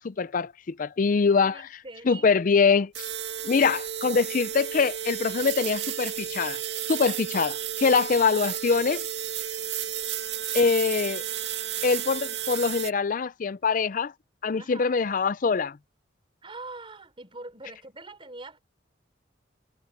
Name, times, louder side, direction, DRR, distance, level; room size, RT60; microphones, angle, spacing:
voice 1, 0.0-1.6 2.1-3.1 3.4-6.6 6.9-9.1 10.5-11.2 11.8-14.1 14.4-15.8, left 5 dB, 45° left, 0.4 m, -24 dB
voice 2, 1.5-2.3 14.5-15.1 16.4-18.6, right 2 dB, 30° right, 4.3 m, -43 dB
sound 1, 2.9-12.9, right 10 dB, 70° right, 1.9 m, -32 dB
head